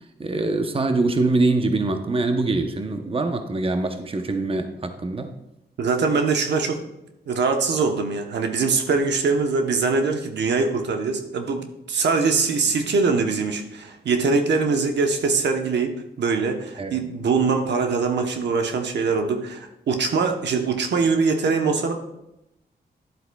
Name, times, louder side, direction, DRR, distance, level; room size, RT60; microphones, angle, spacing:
voice 1, 0.2-5.3 16.8-16.9, right 2 dB, 30° right, 7 dB, 0.8 m, -23 dB
voice 2, 5.8-6.8 7.3-21.9, right 4 dB, 80° right, 4 dB, 0.9 m, -22 dB
11.0 x 7.9 x 2.3 m, 0.87 s
cardioid pair, 75°, 18 cm